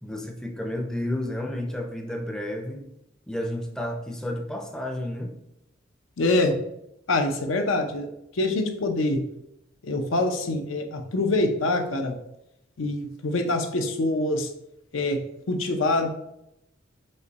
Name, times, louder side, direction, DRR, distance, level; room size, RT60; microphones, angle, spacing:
voice 1, 0.0-2.8 3.3-5.3, left 1 dB, 5° left, 2 dB, 0.4 m, -31 dB
voice 2, 6.2-6.6 7.1-8.1 8.3-9.2 9.8-12.1 12.8-14.5 14.9-15.2 15.5-16.1, left 2 dB, 80° left, 5 dB, 0.6 m, -25 dB
5.4 x 2.2 x 3.9 m, 0.82 s
head